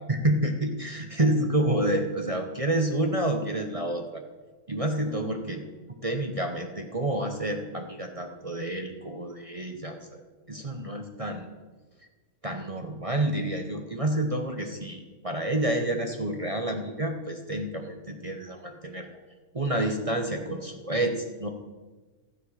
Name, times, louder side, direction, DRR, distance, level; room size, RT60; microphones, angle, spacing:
voice 1, 0.1-4.2 4.7-5.6 6.0-10.2 10.5-11.4 12.4-19.1 19.5-21.5, right 1 dB, 30° right, 4 dB, 0.7 m, -29 dB
12.5 x 7.9 x 6.5 m, 1.3 s
omnidirectional pair, 1.9 m